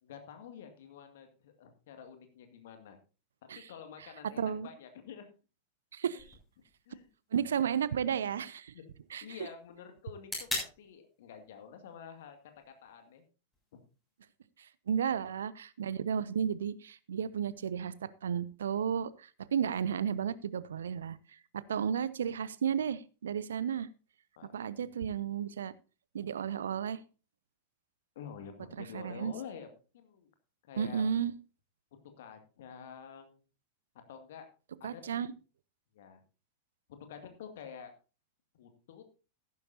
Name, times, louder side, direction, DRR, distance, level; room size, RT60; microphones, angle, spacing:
voice 1, 0.0-3.0 3.5-5.3 6.9-7.1 8.7-8.9 9.2-12.4 12.7-13.2 24.4-24.5 24.8-24.9 28.2-29.7 29.9-30.3 30.6-31.0 32.2-33.4 34.1-34.5 34.8-35.2 35.9-36.2 36.9-37.9 38.5-39.0, left 7 dB, 55° left, 7 dB, 2.1 m, -48 dB
voice 2, 4.4-4.7 5.9-6.3 7.3-8.7 9.1-9.2 14.6-23.9 24.5-25.7 26.1-27.0 28.8-29.3 30.8-31.3 34.8-35.3, right 8 dB, 65° right, 19 dB, 0.5 m, -33 dB
sound 1, 6.2-14.2, left 1 dB, 10° left, 7.3 m, -45 dB
14.5 x 11.5 x 2.7 m, 0.33 s
figure-of-eight pair, 90°, 0 cm